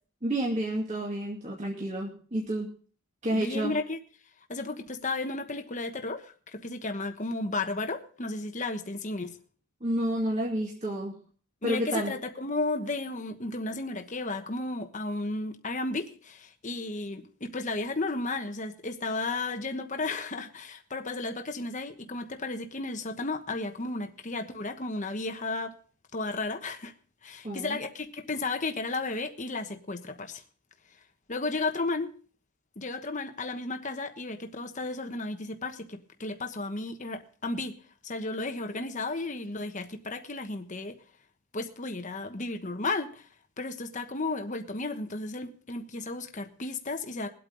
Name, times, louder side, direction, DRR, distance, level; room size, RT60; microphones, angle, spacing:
voice 1, 0.2-2.7 3.2-3.7 9.8-11.1 11.6-12.1 27.4-27.8, right 1 dB, 35° right, -2 dB, 2.4 m, -30 dB
voice 2, 3.3-4.0 4.5-9.4 11.6-25.7 26.1-26.9 27.2-30.4 31.3-32.1 32.8-37.8 38.0-40.9 41.5-43.3 43.6-47.3, left 3 dB, 35° left, 6 dB, 1.2 m, -33 dB
21.0 x 8.4 x 3.9 m, 0.42 s
head